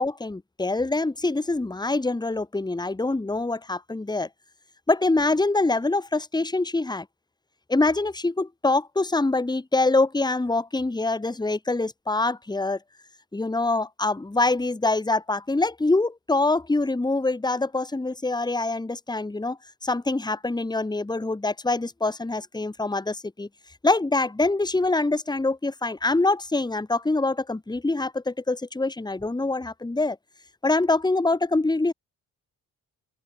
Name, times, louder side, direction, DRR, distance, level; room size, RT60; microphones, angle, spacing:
voice 1, 0.0-4.3 4.9-7.1 7.7-12.8 13.3-23.5 23.8-30.2 30.6-31.9, left 2 dB, 10° left, 1.3 m, -25 dB
open air
cardioid pair, 65°, 37 cm